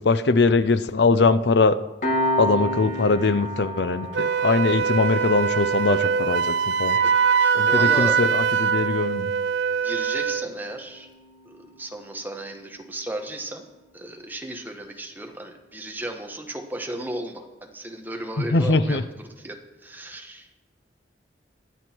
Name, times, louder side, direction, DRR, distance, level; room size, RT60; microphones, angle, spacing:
voice 1, 0.0-1.8 2.4-7.0 7.5-9.3 18.4-19.0, left 3 dB, 65° left, 14 dB, 0.7 m, -21 dB
Piano, 2.0-13.1, equal, 50° left, 2.6 m, -33 dB
Wind instrument woodwind instrument, 4.1-10.5, right 6 dB, 70° right, 0.5 m, -22 dB
voice 2, 7.0-8.2 9.8-11.1 11.4-13.6 13.9-19.1 19.4-20.6, right 1 dB, 10° right, 3 dB, 1.5 m, -35 dB
23.5 x 8.1 x 4.6 m, 1.0 s
head